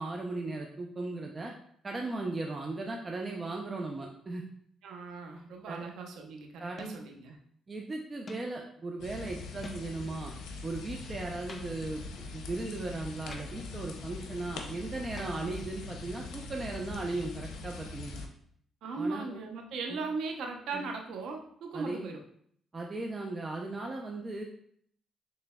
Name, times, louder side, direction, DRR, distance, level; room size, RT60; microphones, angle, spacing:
voice 1, 0.0-1.5 1.8-4.5 5.7-5.8 6.6-7.0 7.7-10.3 10.6-12.1 12.3-18.3 19.0-19.4 19.9-20.0 20.7-20.8 21.7-22.1 22.7-24.4, right 2 dB, 30° right, 0 dB, 0.5 m, -37 dB
voice 2, 4.8-7.4 18.8-22.2, right 4 dB, 80° right, 2 dB, 0.8 m, -38 dB
sound 1, 4.9-5.3 6.8-7.2 8.3-8.6 9.6-10.1 11.5-12.1 13.3-13.8 15.2-15.8, left 2 dB, 35° left, 0.6 m, -48 dB
sound 2, 9.0-18.3, left 3 dB, 85° left, 0.7 m, -42 dB
6.5 x 3.2 x 2.3 m, 0.64 s
cardioid pair, 90°, 0 cm